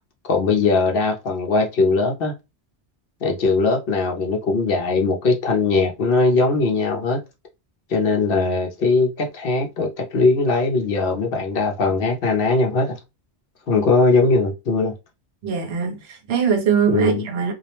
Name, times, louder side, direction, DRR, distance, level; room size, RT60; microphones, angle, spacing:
voice 1, 0.3-2.3 3.2-7.2 7.9-13.0 13.7-14.9 16.9-17.3, left 3 dB, 60° left, 0.7 m, -20 dB
voice 2, 15.4-17.5, right 6 dB, 65° right, 0.9 m, -22 dB
2.4 x 2.0 x 2.9 m
omnidirectional pair, 1.2 m